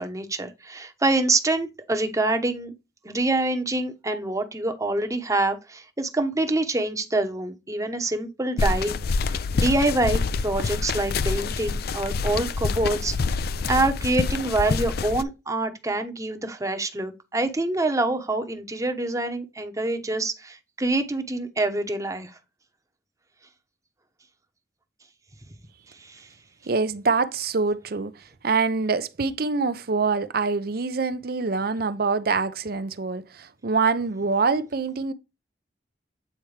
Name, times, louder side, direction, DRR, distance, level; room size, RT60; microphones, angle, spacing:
voice 1, 0.0-2.7 3.0-9.0 9.5-13.4 13.7-22.3 26.0-26.3, right 2 dB, 20° right, 1.0 m, -26 dB
sound 1, 8.6-15.2, left 4 dB, 60° left, 0.4 m, -26 dB
voice 2, 26.7-35.1, right 4 dB, 60° right, 0.6 m, -25 dB
8.7 x 4.5 x 3.3 m
head